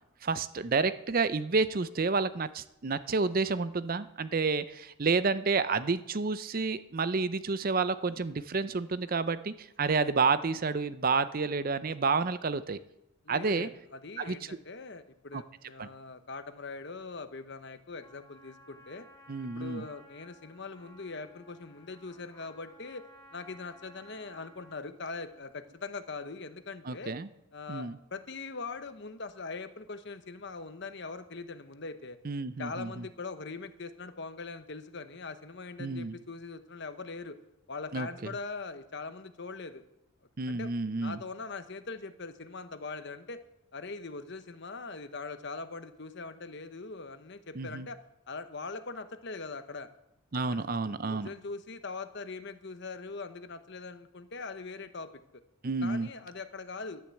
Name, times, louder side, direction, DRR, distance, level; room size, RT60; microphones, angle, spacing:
voice 1, 0.2-12.8 13.3-13.7 14.2-14.4 15.3-15.4 15.8-15.9 19.3-19.8 26.9-27.3 27.7-28.0 32.2-33.0 35.8-36.2 37.9-38.1 40.4-41.2 47.6-47.9 50.3-51.3 55.6-56.1, right 4 dB, 40° right, 14 dB, 0.5 m, -30 dB
voice 2, 13.2-19.1 19.4-27.2 27.5-32.2 32.6-37.4 37.7-39.8 40.5-40.7 41.0-43.4 43.7-48.0 48.3-49.9 50.4-55.4 55.8-57.0, left 4 dB, 55° left, 10 dB, 1.0 m, -42 dB
Trumpet, 18.0-24.9, equal, 15° left, 3.9 m, -57 dB
12.0 x 10.5 x 7.7 m, 0.86 s
head